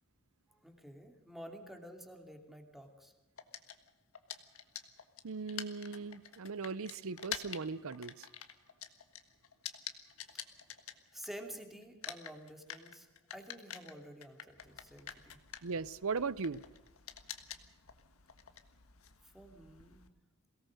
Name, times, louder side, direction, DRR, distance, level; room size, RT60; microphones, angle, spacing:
voice 1, 0.5-3.1 11.1-15.4 19.3-20.0, equal, ahead, 2.7 m, -50 dB
sound 1, 3.4-11.6 11.8-20.1, left 9 dB, 70° left, 1.5 m, -47 dB
voice 2, 5.2-8.3 15.6-16.6, right 4 dB, 65° right, 0.7 m, -38 dB
22.5 x 18.0 x 6.5 m
head